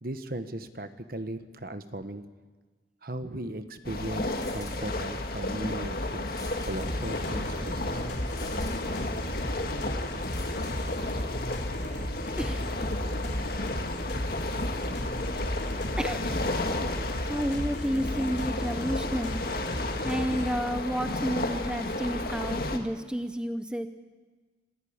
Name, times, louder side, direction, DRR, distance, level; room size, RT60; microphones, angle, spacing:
voice 1, 0.0-2.2 3.0-6.3 6.6-8.1, right 1 dB, 50° right, 10 dB, 1.3 m, -37 dB
sound 1, 3.8-22.8, left 2 dB, 55° left, 1.9 m, -32 dB
sound 2, 4.2-5.3 6.2-7.4 8.2-9.3 10.1-11.4, left 3 dB, 20° left, 3.1 m, -48 dB
sound 3, 6.8-20.5, equal, 70° left, 3.7 m, -36 dB
voice 2, 12.3-12.7 16.0-16.3 17.2-19.4 20.0-23.9, equal, 5° right, 9 dB, 0.7 m, -31 dB
26.0 x 14.5 x 8.7 m, 1.4 s
head